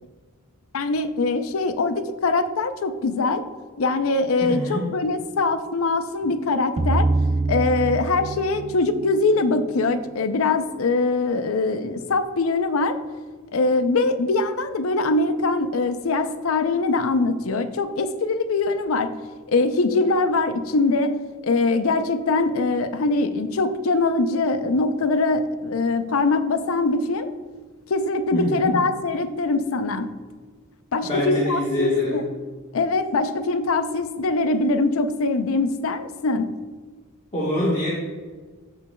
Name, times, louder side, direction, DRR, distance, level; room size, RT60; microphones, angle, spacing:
voice 1, 0.7-3.4 3.8-7.1 7.5-13.0 13.5-19.1 19.5-21.2 21.4-27.3 27.9-30.1 30.9-32.2 32.7-36.5, left 3 dB, 65° left, 10 dB, 0.5 m, -22 dB
voice 2, 4.4-4.9 28.3-28.8 31.0-32.2 37.3-37.9, left 1 dB, 30° left, -6 dB, 1.3 m, -24 dB
sound 1, 6.8-9.9, right 2 dB, 30° right, 0.4 m, -25 dB
13.5 x 5.2 x 2.2 m, 1.5 s
head